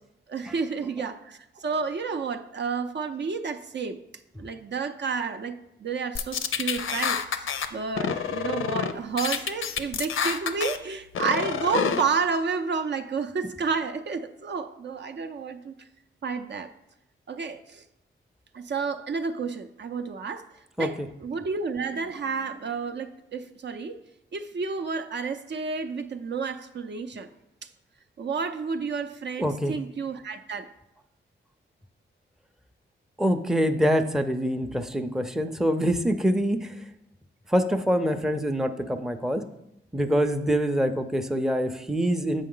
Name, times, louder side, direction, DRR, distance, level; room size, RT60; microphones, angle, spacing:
voice 1, 0.3-4.0 4.4-15.9 16.2-16.7 17.3-17.8 18.5-20.5 20.8-24.0 24.3-27.3 27.6-27.7 28.2-30.7, right 5 dB, 60° right, 7 dB, 0.5 m, -31 dB
sound 1, 6.2-7.7 8.0-8.9 9.2-10.8 11.1-12.0, left 7 dB, 80° left, 0.5 m, -28 dB
voice 2, 29.4-29.7 33.2-36.8 37.5-39.4 39.9-42.5, equal, ahead, 7 dB, 0.5 m, -25 dB
7.5 x 5.4 x 3.8 m, 0.84 s
cardioid pair, 75°, 21 cm